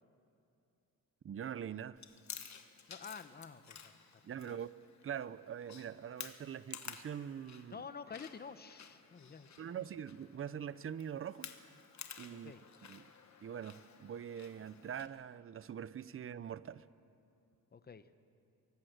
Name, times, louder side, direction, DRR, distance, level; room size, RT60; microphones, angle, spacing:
voice 1, 1.2-2.0 4.2-4.7 5.0-7.8 9.6-11.5 12.2-12.5 12.8-13.1 13.4-16.9, right 8 dB, 40° right, 17 dB, 0.5 m, -43 dB
Chewing mastication, 2.0-15.1, left 7 dB, 50° left, 1.3 m, -53 dB
voice 2, 2.9-3.9 4.4-4.6 7.7-9.6 12.3-12.6 17.7-18.1, left 5 dB, 25° left, 12 dB, 0.7 m, -49 dB
23.5 x 18.0 x 8.0 m, 2.7 s
wide cardioid pair, 180°, 36 cm